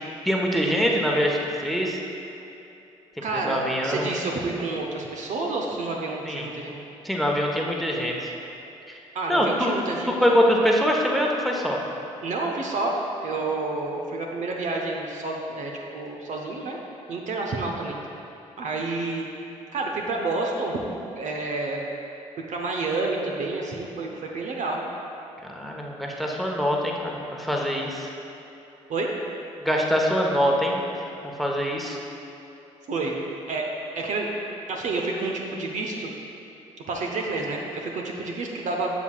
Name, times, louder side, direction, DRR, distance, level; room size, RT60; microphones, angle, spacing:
voice 1, 0.2-2.0 3.2-4.1 6.2-6.5 7.0-8.3 8.9-9.0 9.3-9.8 10.1-11.8 25.4-28.1 29.6-30.8 31.2-32.0, equal, ahead, -1 dB, 1.2 m, -24 dB
voice 2, 3.2-6.8 9.1-10.1 12.2-16.8 17.1-18.0 18.6-19.3 19.7-20.8 21.2-21.8 22.5-24.8 28.9-29.1 32.9-33.2 33.5-33.7 33.9-34.3 34.7-36.1 36.9-38.9, right 3 dB, 50° right, 0 dB, 0.9 m, -29 dB
12.0 x 8.0 x 2.4 m, 2.8 s
figure-of-eight pair, 45°, 16 cm